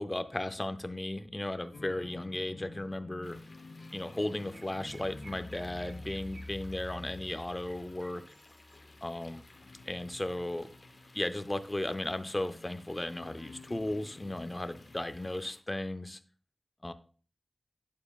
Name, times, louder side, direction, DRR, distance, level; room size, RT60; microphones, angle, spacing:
voice 1, 0.0-3.4 3.9-8.2 9.0-9.4 9.9-10.7 11.1-16.2 16.8-16.9, left 1 dB, 20° left, 10 dB, 0.5 m, -35 dB
sound 1, 1.7-15.3, left 2 dB, 90° left, 0.7 m, -50 dB
sound 2, 3.2-15.6, left 2 dB, 40° left, 0.9 m, -58 dB
Chirp tweet, 3.8-3.9 4.2-8.8, right 2 dB, 70° right, 0.9 m, -56 dB
8.8 x 7.0 x 2.4 m, 0.40 s
wide cardioid pair, 80°, 0 cm